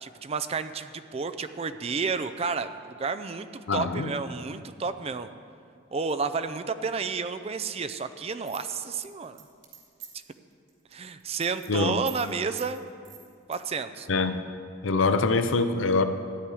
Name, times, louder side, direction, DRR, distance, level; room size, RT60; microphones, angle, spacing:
voice 1, 0.0-5.3 5.9-9.4 10.9-12.8 13.5-14.1, right 5 dB, 30° right, 11 dB, 0.4 m, -31 dB
voice 2, 3.7-4.1 11.7-11.9 14.1-14.4 14.8-16.0, left 3 dB, 80° left, 9 dB, 0.6 m, -24 dB
sound 1, 8.5-10.3 10.7-10.9 11.2-11.7 12.1-12.3 12.6-12.7 13.0-13.6, right 11 dB, 70° right, 2.4 m, -44 dB
13.5 x 9.8 x 4.9 m, 2.3 s
head